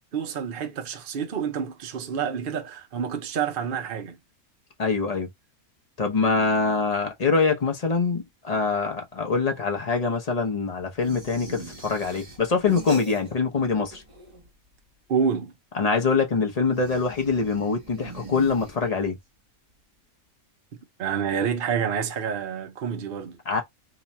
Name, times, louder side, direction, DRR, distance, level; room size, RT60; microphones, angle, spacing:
voice 1, 0.1-4.2 15.1-15.5 21.0-23.4, right 7 dB, 50° right, 0.7 m, -28 dB
voice 2, 4.8-5.3 6.0-14.0 15.8-19.2 23.5-23.6, left 4 dB, 35° left, 0.7 m, -24 dB
terrifying zombie getting shot, 11.0-13.6 13.8-14.7 16.7-19.2, right 3 dB, 25° right, 1.0 m, -42 dB
2.9 x 2.3 x 4.1 m
omnidirectional pair, 1.5 m